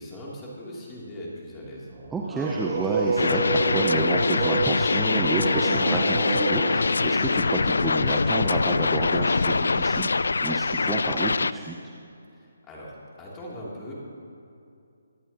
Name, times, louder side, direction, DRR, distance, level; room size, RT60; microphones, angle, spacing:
voice 1, 0.0-1.9 12.3-12.9 13.2-13.9, equal, 15° left, -5 dB, 3.1 m, -40 dB
sound 1, 1.9-6.8, right 3 dB, 30° right, 2.3 m, -28 dB
voice 2, 2.1-11.8, right 3 dB, 5° right, -1 dB, 0.7 m, -30 dB
sound 2, 3.2-11.5, left 4 dB, 80° left, 0.3 m, -24 dB
24.0 x 11.0 x 3.0 m, 2.5 s
hypercardioid pair, 155°, 0 cm